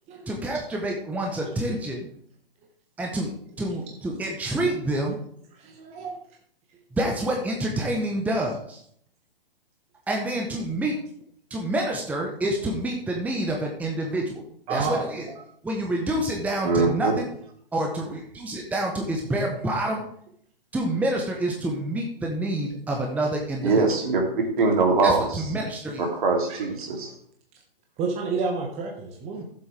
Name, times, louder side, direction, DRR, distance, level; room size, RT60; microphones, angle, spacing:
voice 1, 0.3-2.1 3.0-3.3 3.6-5.2 6.9-8.8 10.1-10.9 11.5-14.4 14.7-15.3 15.6-17.3 17.7-20.0 20.7-23.9 25.0-26.1, right 1 dB, 5° right, 0 dB, 1.0 m, -27 dB
voice 2, 5.6-6.2 14.7-15.1 26.5-26.6 28.0-29.4, right 4 dB, 20° right, 1 dB, 1.4 m, -29 dB
voice 3, 16.6-17.1 23.6-24.2 24.6-25.2 26.0-27.1, right 3 dB, 55° right, 1 dB, 2.9 m, -22 dB
14.0 x 7.6 x 3.4 m, 0.64 s
figure-of-eight pair, 125°, 29 cm